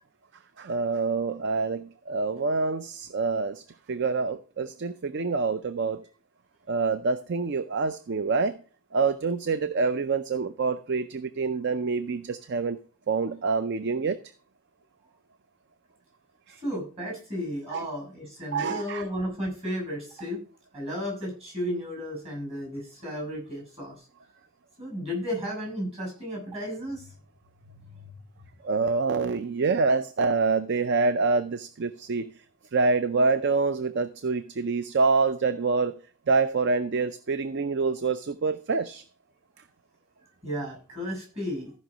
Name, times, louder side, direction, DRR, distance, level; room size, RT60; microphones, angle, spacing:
voice 1, 0.6-6.0 6.7-8.6 8.9-12.8 13.1-14.2 16.5-16.6 17.7-17.9 18.5-19.0 28.6-32.3 32.7-35.9 36.3-39.0, right 4 dB, 55° right, 0.5 m, -26 dB
voice 2, 16.6-20.4 20.7-24.0 24.8-27.1 27.7-28.1 40.4-41.7, equal, 30° right, 6.8 m, -34 dB
14.0 x 5.5 x 5.0 m
head